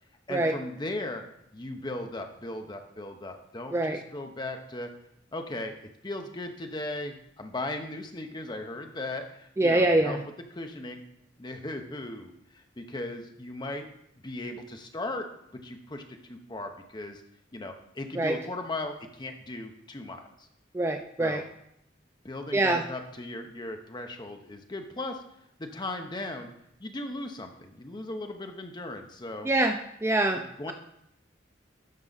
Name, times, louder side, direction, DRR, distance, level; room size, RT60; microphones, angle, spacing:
voice 1, 0.3-1.2 1.5-4.9 5.3-5.7 6.0-10.2 10.5-11.0 11.4-13.9 14.2-15.3 15.5-17.2 17.5-20.5 21.2-21.4 22.2-25.2 25.6-26.5 26.8-29.5 30.6-30.7, left 2 dB, 25° left, 5 dB, 0.8 m, -37 dB
voice 2, 9.6-10.2 18.2-18.4 20.7-21.4 22.5-22.8 29.4-30.4, right 2 dB, 15° right, 5 dB, 0.4 m, -24 dB
12.0 x 4.8 x 4.0 m, 0.76 s
head